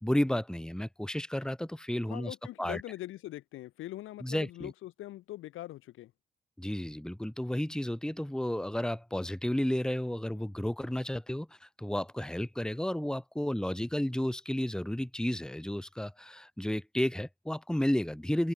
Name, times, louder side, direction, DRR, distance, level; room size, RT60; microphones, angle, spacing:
voice 1, 0.0-2.8 4.2-4.7 6.6-18.5, left 1 dB, 5° left, 1.8 m, -32 dB
voice 2, 2.1-6.1, left 15 dB, 80° left, 4.2 m, -42 dB
open air
supercardioid pair, 50°, 20 cm